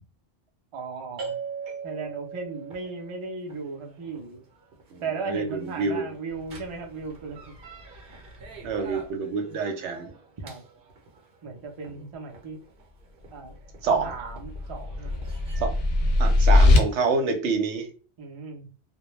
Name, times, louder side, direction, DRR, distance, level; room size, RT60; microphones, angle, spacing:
voice 1, 0.7-1.4 1.8-4.4 5.0-7.5 10.4-10.6 11.4-12.6 13.3-13.6 14.0-15.2 18.2-18.7, right 4 dB, 35° right, 1 dB, 0.5 m, -36 dB
sound 1, 1.2-17.2, right 5 dB, 55° right, 0.9 m, -44 dB
voice 2, 4.9-6.1 8.6-10.1 13.8-14.1 15.6-15.7 16.2-17.9, right 4 dB, 80° right, 5 dB, 0.9 m, -27 dB
sound 2, 14.0-16.8, left 2 dB, 55° left, 0.7 m, -20 dB
2.2 x 2.1 x 3.0 m, 0.37 s
omnidirectional pair, 1.2 m